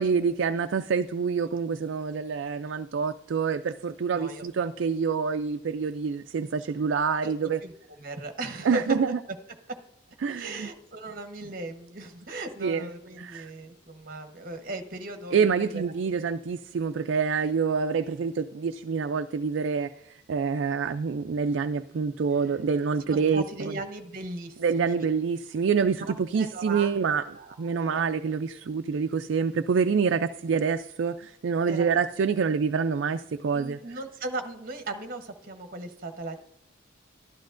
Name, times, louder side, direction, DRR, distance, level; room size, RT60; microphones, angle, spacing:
voice 1, 0.0-7.6 8.7-9.2 10.2-10.7 12.6-12.9 13.2-13.5 15.3-23.4 24.6-27.2 27.6-33.8, right 5 dB, 65° right, 8 dB, 0.3 m, -26 dB
voice 2, 4.1-4.5 7.2-9.0 10.3-16.1 22.4-22.5 23.1-25.1 26.0-27.0 27.3-28.1 28.5-28.6 31.7-32.0 33.5-36.4, right 2 dB, 45° right, 7 dB, 1.0 m, -37 dB
12.5 x 11.5 x 2.5 m, 0.82 s
head